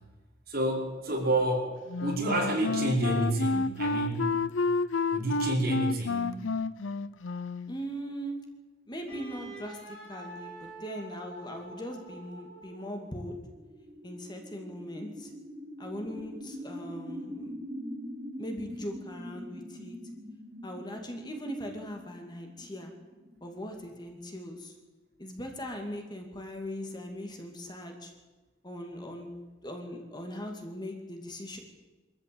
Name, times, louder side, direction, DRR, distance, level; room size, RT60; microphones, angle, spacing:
voice 1, 0.5-4.4 5.1-6.4, right 1 dB, 50° right, -1 dB, 5.2 m, -29 dB
Wind instrument woodwind instrument, 1.9-7.8, left 3 dB, 85° left, 0.7 m, -30 dB
voice 2, 7.7-8.4 8.9-13.4 14.0-15.3 15.8-17.5 18.4-20.0 20.6-22.9 23.4-24.7 25.2-28.1 28.6-29.4 29.6-31.6, equal, 20° left, 3 dB, 2.7 m, -40 dB
Wind instrument woodwind instrument 2, 9.1-13.1, right 2 dB, 5° left, 7.5 m, -47 dB
sound 1, 12.6-24.1, equal, 25° right, 2.7 m, -44 dB
23.0 x 14.0 x 8.7 m, 1.2 s
head